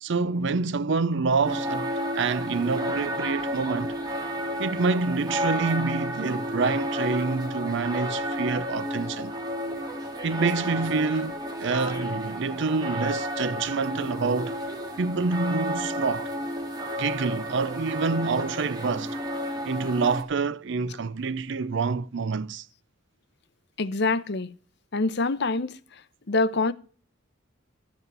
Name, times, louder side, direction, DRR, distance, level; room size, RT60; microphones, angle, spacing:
voice 1, 0.0-3.9 4.6-9.3 10.2-14.6 15.0-16.3 17.0-19.2 19.6-22.7, right 4 dB, 55° right, 0.5 m, -27 dB
sound 1, 1.4-20.2, equal, 20° right, 2.0 m, -32 dB
voice 2, 23.8-24.5 24.9-26.0 26.3-26.7, left 3 dB, 55° left, 0.7 m, -25 dB
13.5 x 7.9 x 5.4 m
head